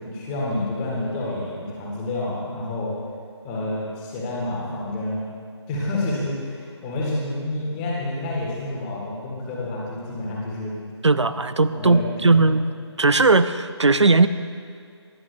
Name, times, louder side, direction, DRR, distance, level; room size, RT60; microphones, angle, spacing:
voice 1, 0.0-2.9 3.4-5.3 5.7-10.8 11.7-12.4, left 2 dB, 15° left, -5 dB, 1.8 m, -29 dB
voice 2, 11.0-12.7 13.0-14.3, right 3 dB, 85° right, 13 dB, 0.5 m, -18 dB
19.0 x 11.0 x 2.3 m, 2.2 s
figure-of-eight pair, 155°, 14 cm